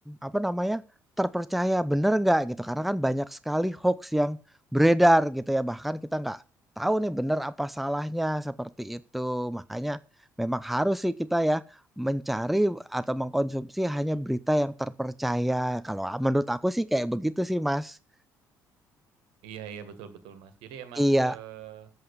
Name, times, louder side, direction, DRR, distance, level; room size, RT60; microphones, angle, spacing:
voice 1, 0.1-0.8 1.2-4.4 4.7-6.4 6.8-10.0 10.4-11.6 12.0-18.0 21.0-21.3, right 1 dB, ahead, 15 dB, 0.6 m, -26 dB
voice 2, 19.4-21.9, right 9 dB, 75° right, 10 dB, 1.7 m, -43 dB
7.9 x 7.6 x 6.7 m, 0.35 s
hypercardioid pair, 55°, 9 cm